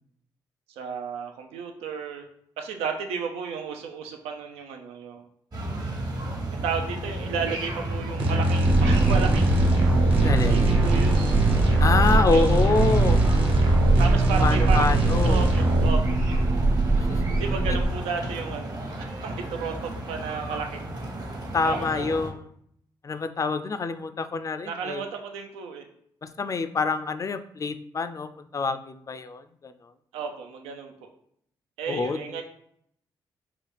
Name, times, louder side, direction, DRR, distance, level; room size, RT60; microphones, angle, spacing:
voice 1, 0.7-2.3 2.6-5.2 6.5-9.7 10.5-11.2 12.3-12.6 14.0-16.4 17.4-20.8 21.6-22.2 24.6-25.8 30.1-31.1 31.8-32.4, right 5 dB, 85° right, 4 dB, 0.5 m, -33 dB
sound 1, 5.5-22.3, right 1 dB, 40° right, 1.0 m, -33 dB
sound 2, 8.2-15.9, right 2 dB, 65° right, 1.3 m, -24 dB
sound 3, 8.6-17.8, right 2 dB, 25° right, 0.6 m, -22 dB
voice 2, 10.2-10.7 11.8-13.2 14.3-15.4 17.0-17.2 21.5-22.5 23.0-25.0 26.2-29.7 31.9-32.4, left 4 dB, 35° left, 10 dB, 0.3 m, -26 dB
3.9 x 2.3 x 3.3 m, 0.68 s
supercardioid pair, 50°, 10 cm